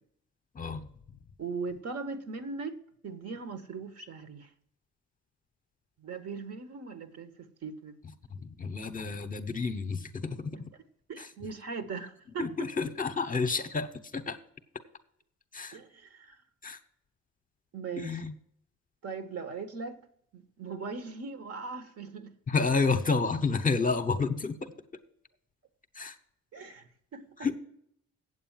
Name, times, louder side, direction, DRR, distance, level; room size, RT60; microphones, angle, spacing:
voice 1, 0.5-0.9 8.3-10.7 11.2-11.3 12.4-14.4 15.5-15.8 16.6-16.8 18.0-18.3 22.5-24.7 25.9-26.2 27.4-27.6, left 4 dB, 25° left, 0.9 m, -30 dB
voice 2, 1.4-2.8 3.0-4.5 6.0-8.0 11.1-12.5 15.7-16.4 17.7-18.2 19.0-20.0 20.3-22.3 26.5-27.2, right 4 dB, 55° right, 1.4 m, -39 dB
8.3 x 8.0 x 7.3 m
cardioid pair, 90°, 30 cm